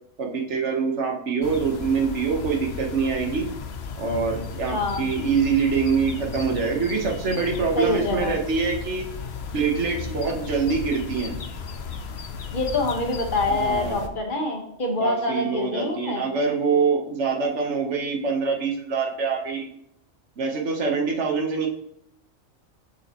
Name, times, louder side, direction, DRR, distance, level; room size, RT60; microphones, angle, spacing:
voice 1, 0.2-3.5 4.0-9.1 9.5-11.4 13.5-14.1 15.0-19.7 20.4-21.7, right 5 dB, 60° right, 2 dB, 1.3 m, -25 dB
sound 1, 1.4-14.1, left 5 dB, 60° left, 0.9 m, -35 dB
voice 2, 7.8-8.3 12.5-16.2, left 2 dB, 40° left, 2 dB, 1.3 m, -25 dB
6.6 x 6.5 x 2.9 m, 0.74 s
omnidirectional pair, 1.4 m